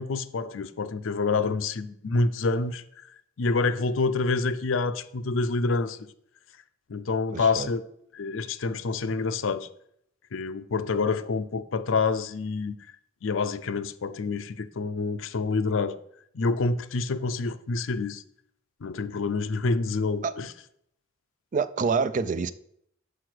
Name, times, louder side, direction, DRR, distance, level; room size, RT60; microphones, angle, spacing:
voice 1, 0.0-2.8 3.4-6.1 6.9-7.8 8.1-9.7 10.3-12.8 13.2-16.0 16.3-18.2 18.8-20.5, left 4 dB, 80° left, 0.5 m, -27 dB
voice 2, 7.3-7.7 20.2-20.4 21.5-22.5, right 5 dB, 40° right, 0.4 m, -26 dB
6.4 x 4.8 x 6.2 m
head